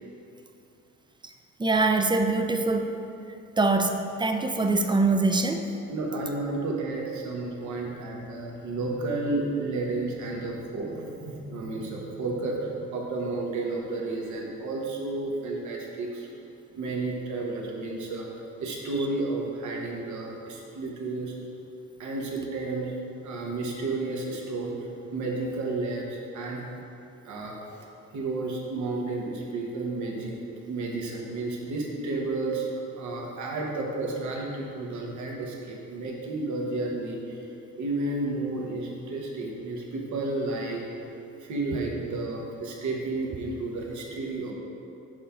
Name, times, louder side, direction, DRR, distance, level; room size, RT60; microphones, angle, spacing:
voice 1, 1.6-2.9 3.6-5.7, right 3 dB, 15° right, 5 dB, 0.4 m, -24 dB
voice 2, 5.9-16.3 16.8-18.3 18.6-21.3 22.0-22.9 23.2-24.8 25.1-26.6 27.2-27.6 28.1-30.3 30.7-32.7 33.0-37.5 37.8-40.8 41.4-44.5, right 2 dB, 70° right, -1 dB, 1.2 m, -32 dB
6.5 x 3.8 x 5.7 m, 2.7 s
cardioid pair, 90°, 30 cm